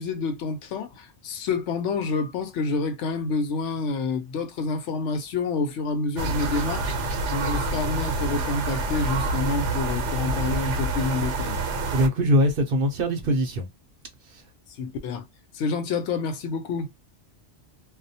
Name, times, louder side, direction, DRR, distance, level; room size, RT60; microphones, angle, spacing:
voice 1, 0.0-6.9 7.3-11.6 14.8-15.3 15.5-16.9, left 4 dB, 80° left, 0.9 m, -28 dB
sound 1, 6.2-12.1, right 2 dB, 80° right, 1.0 m, -27 dB
voice 2, 11.9-13.7 14.3-14.4, equal, 60° right, 0.7 m, -22 dB
2.3 x 2.0 x 2.7 m
omnidirectional pair, 1.2 m